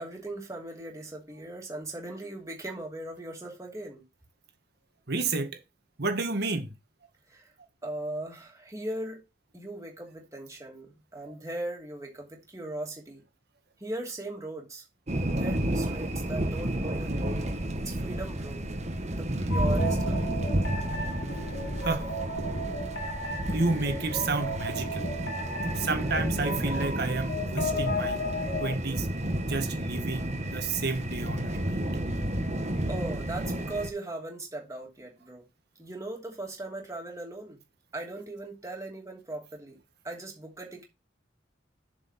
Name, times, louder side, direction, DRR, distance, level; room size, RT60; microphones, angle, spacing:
voice 1, 0.0-4.0 7.3-7.5 7.8-9.2 9.5-13.2 13.8-14.8 15.3-17.6 17.8-18.7 19.1-20.2 32.9-35.4 35.8-37.6 37.9-39.8 40.0-40.8, right 2 dB, 15° right, 2.8 m, -38 dB
voice 2, 5.1-5.5 6.0-6.7 21.8-22.1 23.5-25.1 25.8-28.2 28.6-29.1 29.5-31.8, right 3 dB, 60° right, 1.7 m, -30 dB
sound 1, 15.1-33.9, right 1 dB, 35° right, 1.3 m, -31 dB
sound 2, 19.5-28.7, left 1 dB, 70° left, 2.8 m, -35 dB
7.5 x 4.9 x 5.9 m
head